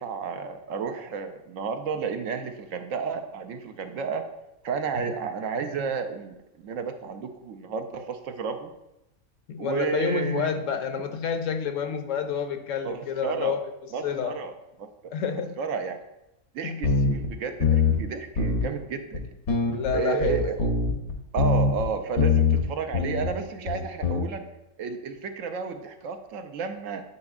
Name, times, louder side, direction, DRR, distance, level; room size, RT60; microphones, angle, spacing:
voice 1, 0.0-4.3 4.6-8.7 9.6-10.5 12.8-13.6 13.9-14.5 14.8-15.1 15.6-16.0 16.5-19.3 19.9-20.7 21.3-24.4 24.8-27.0, right 5 dB, 70° right, 7 dB, 0.9 m, -32 dB
voice 2, 9.5-14.3 15.1-15.6 16.6-16.8 19.7-20.4, left 7 dB, 70° left, 7 dB, 0.9 m, -29 dB
sound 1, 16.8-17.3 17.6-18.1 18.4-18.7 19.1-19.2 19.5-21.9 22.2-22.6 22.9-23.3 23.7-24.2, left 4 dB, 85° left, 1.4 m, -23 dB
9.5 x 5.2 x 2.4 m, 0.89 s
omnidirectional pair, 1.5 m